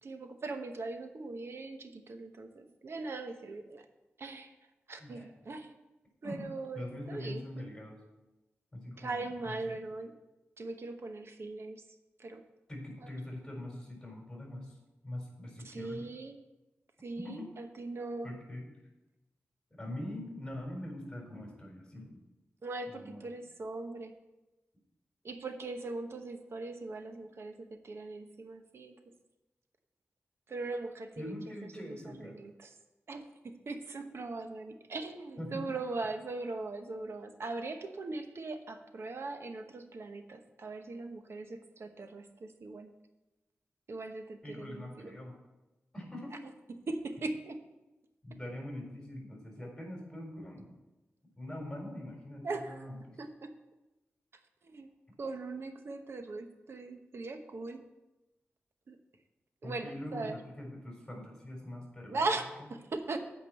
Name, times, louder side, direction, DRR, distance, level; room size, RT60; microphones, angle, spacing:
voice 1, 0.0-3.8 4.2-4.5 4.9-5.7 6.2-7.8 9.0-10.1 10.6-11.8 12.2-12.4 15.6-16.4 17.0-18.3 22.6-24.1 25.2-28.9 30.5-31.3 31.8-32.7 33.1-42.9 43.9-45.1 46.9-47.6 52.4-52.8 53.2-53.5 54.6-54.9 55.2-57.8 58.9-59.0 59.6-60.4 62.1-63.2, right 3 dB, 65° right, 6 dB, 1.0 m, -40 dB
voice 2, 6.7-8.0 8.7-9.8 12.7-14.8 15.0-16.0 17.2-17.5 18.2-18.7 19.7-22.2 22.9-23.2 31.1-32.4 35.4-35.6 44.4-45.4 45.9-46.4 48.2-50.7 51.3-53.2 59.6-62.2, left 1 dB, 15° left, -1 dB, 4.1 m, -43 dB
8.4 x 5.2 x 7.5 m, 1.0 s
wide cardioid pair, 80°, 5 cm